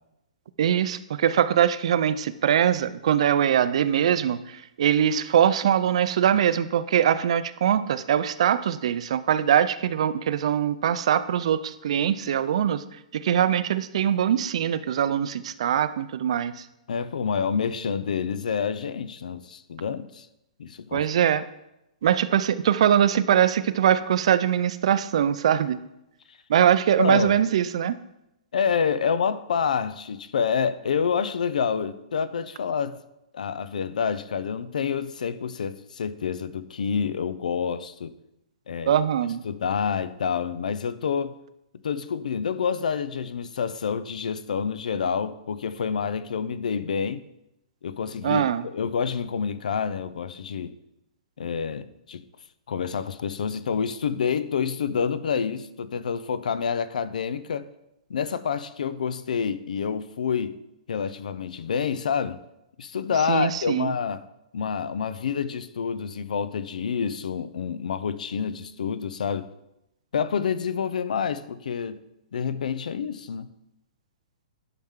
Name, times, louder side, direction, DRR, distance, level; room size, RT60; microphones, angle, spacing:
voice 1, 0.6-12.8 13.1-16.6 20.9-21.4 22.0-25.8 26.5-28.0 38.9-39.4 48.2-48.7 63.3-63.9, right 9 dB, 50° right, 0.4 m, -22 dB
voice 2, 16.9-20.3 20.6-21.1 27.0-27.4 28.5-33.0 33.3-38.1 38.7-39.0 39.4-41.4 41.8-47.2 47.8-50.7 51.4-52.2 52.7-57.7 58.1-60.5 60.9-62.4 62.8-64.2 64.5-69.5 70.1-72.0 72.3-73.5, left 6 dB, 85° left, 0.6 m, -28 dB
10.5 x 5.7 x 3.7 m
hypercardioid pair, 175°, 4 cm